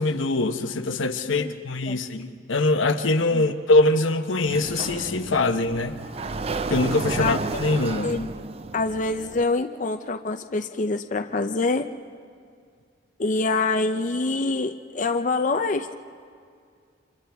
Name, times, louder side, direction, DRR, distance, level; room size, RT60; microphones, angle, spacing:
voice 1, 0.0-6.0 6.7-8.1, left 2 dB, 85° left, 7 dB, 1.0 m, -23 dB
Sliding door, 4.4-9.4, right 3 dB, 30° right, 0.5 m, -32 dB
voice 2, 8.7-11.9 13.2-16.0, left 3 dB, 40° left, 6 dB, 0.5 m, -25 dB
29.5 x 27.0 x 3.5 m, 2.3 s
head